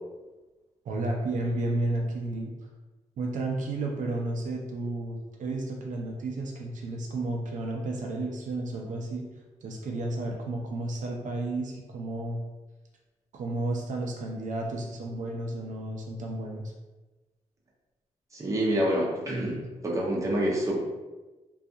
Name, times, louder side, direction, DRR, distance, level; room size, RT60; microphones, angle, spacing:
voice 1, 0.9-2.5 3.2-9.3 9.6-12.4 13.3-16.6, right 2 dB, 85° right, 0 dB, 0.4 m, -32 dB
voice 2, 18.3-20.8, right 1 dB, 25° right, -4 dB, 0.6 m, -27 dB
2.3 x 2.3 x 2.7 m, 1.2 s
wide cardioid pair, 145°, 13 cm